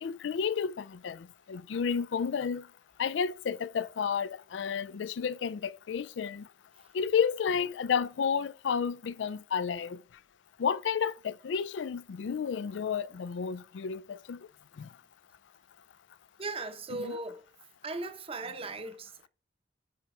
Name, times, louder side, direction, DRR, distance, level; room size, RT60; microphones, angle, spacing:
voice 1, 0.0-2.7 3.0-6.5 6.9-10.0 10.6-14.4 14.8-14.9, left 6 dB, 75° left, 0.4 m, -31 dB
voice 2, 16.4-17.5 17.8-19.3, right 2 dB, 30° right, 0.8 m, -38 dB
7.0 x 4.6 x 4.9 m
head